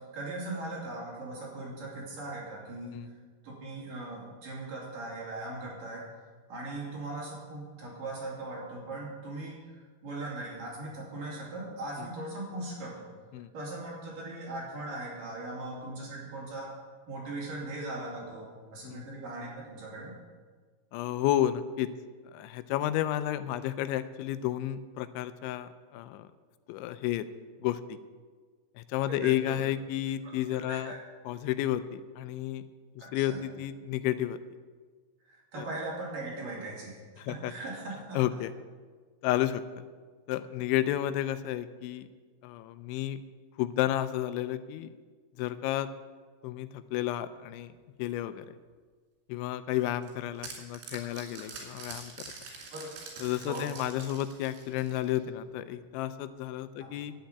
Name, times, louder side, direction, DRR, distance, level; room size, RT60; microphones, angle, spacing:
voice 1, 0.1-3.0 3.4-6.0 6.5-13.1 13.5-16.7 17.1-20.1 29.1-29.6 30.2-31.0 33.0-33.4 35.2-38.2 52.7-52.9 53.4-53.6 56.8-56.9, right 2 dB, 50° right, -4 dB, 4.5 m, -39 dB
voice 2, 20.9-21.9 22.3-26.3 26.7-27.3 27.6-28.0 28.8-30.9 31.3-32.7 33.0-34.4 35.6-35.7 37.2-37.5 38.1-38.5 39.2-39.8 40.3-42.1 42.4-43.2 43.6-44.9 45.4-45.9 46.4-47.7 48.0-48.5 49.3-52.3 53.2-57.1, left 13 dB, 90° left, 13 dB, 3.0 m, -31 dB
sound 1, 49.7-55.3, right 4 dB, 80° right, 5.1 m, -45 dB
10.5 x 8.7 x 9.3 m, 1.5 s
omnidirectional pair, 5.3 m